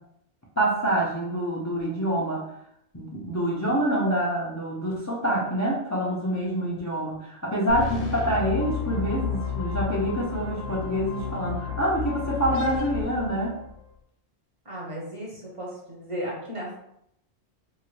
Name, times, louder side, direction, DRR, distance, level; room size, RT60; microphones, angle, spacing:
voice 1, 0.6-2.5 2.9-13.6, right 1 dB, 30° left, -6 dB, 0.3 m, -26 dB
sound 1, 7.7-13.8, left 7 dB, 70° left, 0.8 m, -32 dB
voice 2, 14.6-16.7, equal, 35° right, -4 dB, 0.6 m, -35 dB
2.7 x 2.5 x 3.1 m, 0.76 s
omnidirectional pair, 1.1 m